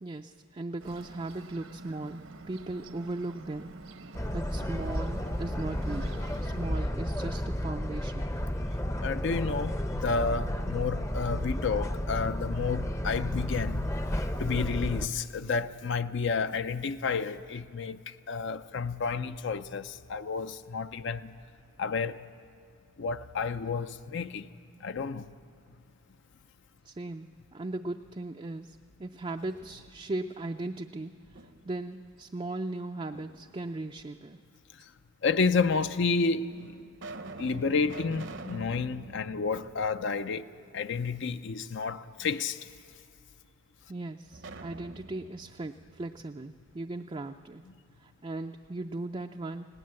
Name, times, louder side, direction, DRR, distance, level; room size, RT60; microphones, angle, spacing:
voice 1, 0.0-3.7 4.3-6.1 6.4-8.3 26.8-34.4 43.9-47.6 48.0-49.7, right 2 dB, 25° right, 0.4 m, -38 dB
Bird, 0.8-6.7, right 3 dB, 75° right, 1.1 m, -47 dB
sound 1, 4.1-15.1, left 1 dB, 15° left, 0.6 m, -32 dB
voice 2, 9.0-13.9 14.4-21.3 21.8-22.2 23.0-24.5 24.8-25.2 35.2-36.5 37.4-40.5 40.7-42.7, left 4 dB, 55° left, 0.5 m, -30 dB
sound 2, 29.2-30.2 30.6-31.9 33.1-33.9 34.8-34.9 35.8-35.9 36.5-40.6 40.9-41.0 44.3-47.1, right 2 dB, 55° right, 0.8 m, -47 dB
20.0 x 17.5 x 7.6 m
head